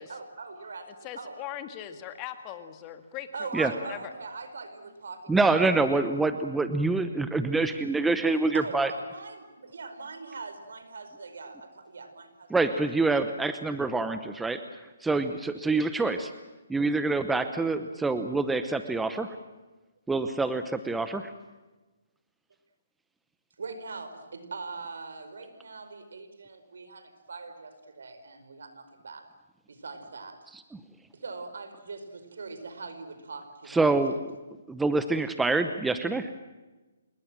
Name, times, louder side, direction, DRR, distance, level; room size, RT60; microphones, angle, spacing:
voice 1, 0.0-1.4 3.3-5.7 8.3-12.5 13.0-13.1 15.9-16.2 17.8-18.1 23.6-29.3 29.7-30.4 31.1-34.0, right 4 dB, 75° right, 9 dB, 4.9 m, -41 dB
voice 2, 1.0-4.1, left 11 dB, 25° left, 8 dB, 2.0 m, -40 dB
voice 3, 5.3-8.9 12.5-14.6 15.0-16.3 16.7-19.3 20.1-21.3 33.7-34.1 34.7-36.3, right 3 dB, 5° right, 9 dB, 0.9 m, -26 dB
27.5 x 21.5 x 7.6 m, 1.2 s
hypercardioid pair, 160°, 0 cm